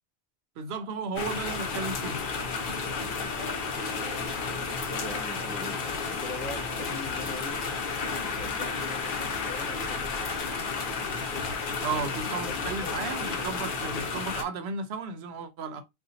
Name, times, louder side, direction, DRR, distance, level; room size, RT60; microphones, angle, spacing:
voice 1, 0.6-2.2 11.8-15.8, right 5 dB, 80° right, 0.8 m, -34 dB
sound 1, 1.1-14.4, left 4 dB, 60° left, 0.8 m, -32 dB
voice 2, 4.9-7.6 8.2-10.4 11.9-13.0, left 2 dB, 15° left, 0.3 m, -42 dB
3.8 x 2.4 x 2.7 m
omnidirectional pair, 1.0 m